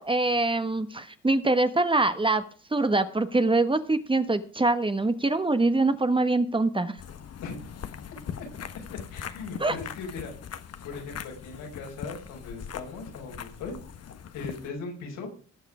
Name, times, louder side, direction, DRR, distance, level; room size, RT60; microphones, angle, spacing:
voice 1, 0.0-2.4 2.7-7.0 9.6-9.7, right 2 dB, 15° right, 11 dB, 1.2 m, -24 dB
sound 1, 7.0-14.7, left 8 dB, 55° left, 1.3 m, -41 dB
voice 2, 9.1-10.3 10.8-13.8 14.3-15.3, left 4 dB, 90° left, 0 dB, 5.8 m, -38 dB
19.5 x 6.6 x 4.9 m, 0.40 s
cardioid pair, 90°, 30 cm